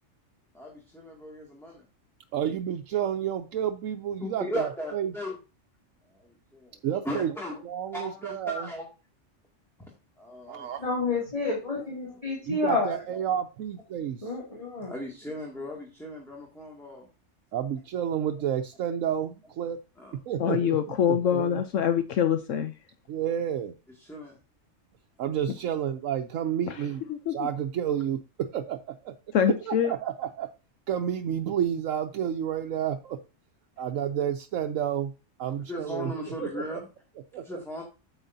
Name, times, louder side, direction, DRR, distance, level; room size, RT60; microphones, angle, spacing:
voice 1, 0.5-1.8 4.2-5.4 6.1-6.8 7.0-7.6 7.9-8.9 10.2-10.7 11.4-12.2 12.5-12.7 13.1-13.2 14.9-17.1 20.0-20.1 24.0-24.4 35.7-36.8 37.4-37.8, left 1 dB, ahead, -2 dB, 2.1 m, -37 dB
voice 2, 2.3-5.1 6.8-7.3 7.6-8.7 10.5-10.8 12.5-14.3 17.5-19.8 20.3-20.8 21.1-21.6 23.1-23.7 25.2-27.0 27.3-29.1 29.5-30.5 30.9-33.2 33.8-35.1 35.4-36.1 36.4-36.8 37.3-37.6, right 9 dB, 90° right, 4 dB, 1.1 m, -30 dB
voice 3, 10.8-12.9 14.2-14.9, left 3 dB, 25° left, -3 dB, 2.5 m, -29 dB
voice 4, 20.4-22.7 26.7-27.5 29.3-29.9, left 9 dB, 75° left, 9 dB, 1.1 m, -25 dB
9.0 x 8.1 x 2.7 m, 0.30 s
omnidirectional pair, 1.3 m